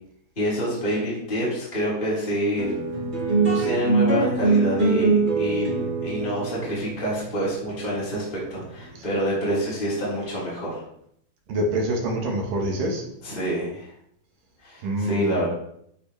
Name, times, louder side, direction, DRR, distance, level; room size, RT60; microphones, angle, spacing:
voice 1, 0.4-2.7 3.2-10.8 13.2-13.9 14.6-15.5, equal, 10° left, -8 dB, 4.7 m, -27 dB
sound 1, 2.6-9.2, right 3 dB, 20° right, 1.1 m, -23 dB
voice 2, 11.5-13.0 14.8-15.4, right 1 dB, 55° right, 0 dB, 3.0 m, -25 dB
12.0 x 9.7 x 3.5 m, 0.70 s
omnidirectional pair, 5.2 m